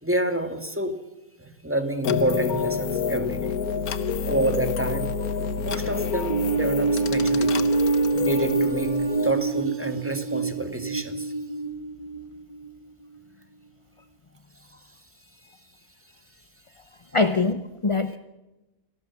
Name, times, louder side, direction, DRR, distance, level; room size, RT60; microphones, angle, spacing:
voice 1, 0.0-1.0 1.4-3.6 4.2-5.2 5.6-7.7 8.2-11.3, right 1 dB, 10° right, 7 dB, 1.9 m, -28 dB
sound 1, 2.0-9.3, left 6 dB, 90° left, 1.6 m, -28 dB
sound 2, 6.3-12.7, right 4 dB, 25° right, 1.9 m, -25 dB
voice 2, 17.1-18.2, left 3 dB, 25° left, 10 dB, 0.7 m, -23 dB
29.0 x 19.5 x 7.2 m, 1.0 s
omnidirectional pair, 1.5 m